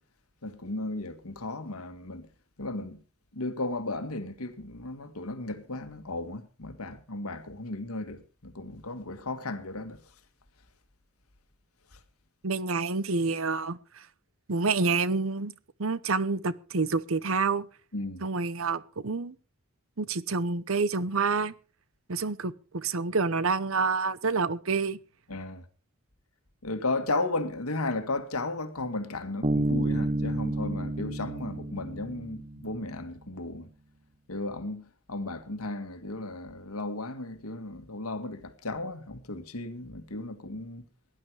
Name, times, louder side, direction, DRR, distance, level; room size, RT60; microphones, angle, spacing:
voice 1, 0.4-2.3 2.6-3.0 3.3-10.0 11.9-12.0 17.9-18.2 25.3-25.6 26.6-33.7 34.3-40.9, left 2 dB, 90° left, 1.8 m, -35 dB
voice 2, 12.4-14.1 14.5-15.5 15.8-17.6 18.2-19.3 20.0-21.5 22.1-25.0, right 4 dB, 70° right, 0.9 m, -28 dB
Bass guitar, 29.4-32.9, right 1 dB, 30° right, 0.8 m, -30 dB
17.5 x 11.0 x 4.8 m
head